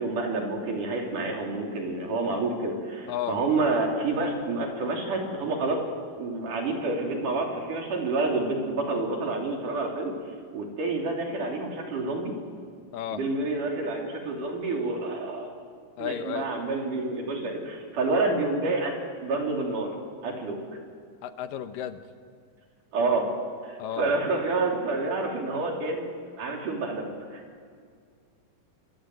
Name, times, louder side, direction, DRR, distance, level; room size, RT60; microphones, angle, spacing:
voice 1, 0.0-5.8 6.2-10.1 10.5-12.4 13.1-15.5 16.0-19.9 20.2-20.6 22.9-23.3 23.6-26.1 26.4-27.4, right 3 dB, 70° right, 1 dB, 4.8 m, -28 dB
voice 2, 16.0-16.5 21.2-22.0 23.8-24.1, left 9 dB, 85° left, 9 dB, 2.8 m, -33 dB
26.0 x 23.5 x 7.9 m, 2.1 s
omnidirectional pair, 3.8 m